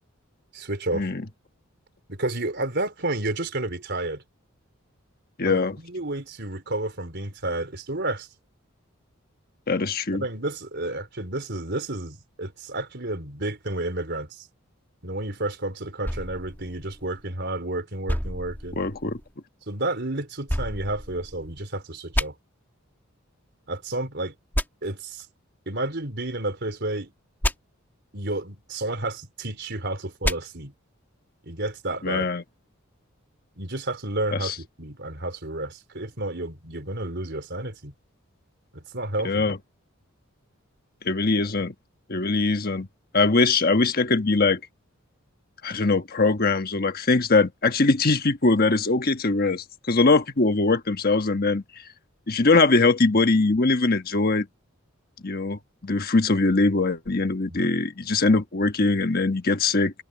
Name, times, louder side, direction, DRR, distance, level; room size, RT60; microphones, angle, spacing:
voice 1, 0.5-1.1 2.1-4.2 5.4-8.3 10.1-14.5 15.0-18.8 19.7-22.3 23.7-24.3 24.8-25.3 25.7-27.1 28.1-30.7 31.4-32.3 33.6-37.9 38.7-39.5 57.5-57.7, right 2 dB, 55° right, 4.5 m, -31 dB
voice 2, 5.4-5.8 9.7-10.2 18.8-19.2 32.0-32.4 34.3-34.5 39.2-39.6 41.0-41.7 42.1-42.9 43.1-44.6 45.6-51.6 52.3-54.5 55.2-59.9, left 3 dB, 45° left, 1.3 m, -22 dB
sound 1, 16.0-17.5 18.1-19.3 20.5-21.6 22.1-22.3 24.5-24.7 27.4-27.5 30.2-30.4, left 1 dB, 10° left, 2.0 m, -29 dB
head